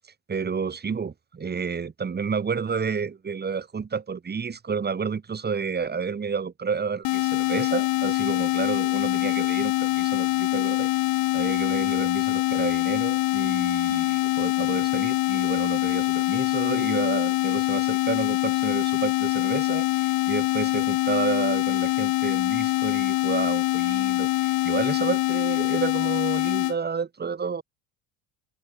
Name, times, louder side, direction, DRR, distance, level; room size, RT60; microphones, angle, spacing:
voice 1, 0.3-10.9 11.3-27.6, right 5 dB, 25° right, 2.6 m, -30 dB
sound 1, 7.0-26.8, left 18 dB, 60° left, 1.8 m, -24 dB
supercardioid pair, 100°, 40 cm